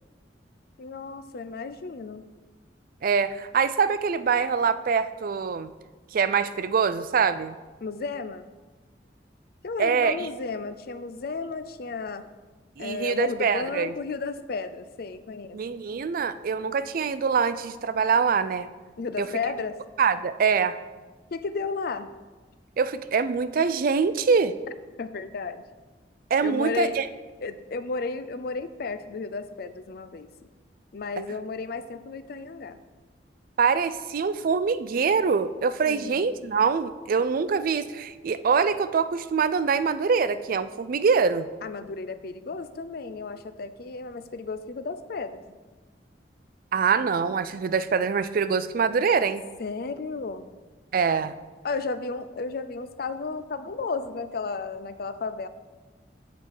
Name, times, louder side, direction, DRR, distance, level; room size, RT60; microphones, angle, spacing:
voice 1, 0.8-2.2 7.8-8.5 9.6-12.3 12.8-15.6 19.0-19.8 21.3-22.1 25.0-25.6 26.4-27.0 27.4-30.3 30.9-32.8 35.9-36.3 41.6-45.4 49.6-50.5 51.6-55.5, left 4 dB, 60° left, 11 dB, 0.5 m, -33 dB
voice 2, 3.0-5.7 6.1-7.6 9.8-10.3 12.8-13.9 15.5-18.7 19.2-19.3 20.0-20.8 22.8-24.6 26.3-27.1 33.6-41.5 46.7-49.4 50.9-51.3, right 5 dB, 55° right, 13 dB, 0.4 m, -24 dB
7.6 x 6.8 x 4.7 m, 1.3 s
head